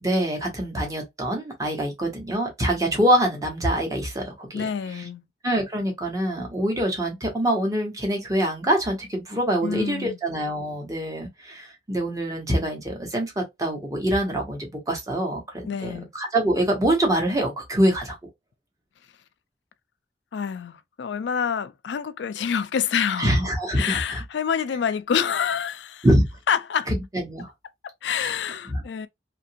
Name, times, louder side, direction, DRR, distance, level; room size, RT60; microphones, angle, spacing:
voice 1, 0.0-4.7 5.0-5.1 5.4-18.2 23.2-24.2 26.0-26.2 26.9-27.5 28.2-28.3 28.7-28.8, right 1 dB, 20° right, 1.0 m, -25 dB
voice 2, 4.5-5.3 9.6-10.2 15.7-16.1 20.3-23.4 23.8-26.1 26.5-26.9 27.8-29.1, left 7 dB, 85° left, 0.4 m, -27 dB
2.8 x 2.5 x 2.7 m
head